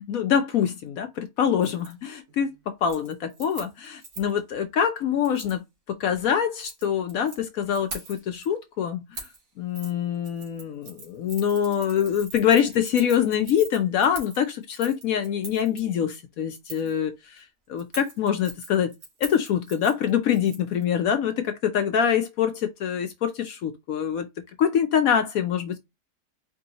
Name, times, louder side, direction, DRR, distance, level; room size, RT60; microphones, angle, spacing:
voice 1, 0.0-5.6 5.9-9.0 9.6-17.4 17.7-18.9 19.2-24.3 24.6-25.8, left 8 dB, 65° left, 1.0 m, -25 dB
Keys jangling, 1.6-1.9 2.3-2.5 2.8-4.4 5.2-5.6 6.4-7.4 7.7-8.5 9.1-9.4 9.7-9.9 10.2-15.8 16.7-17.0 17.8-20.8 21.1-21.2, right 3 dB, 65° right, 2.1 m, -42 dB
4.5 x 3.1 x 2.8 m
omnidirectional pair, 1.8 m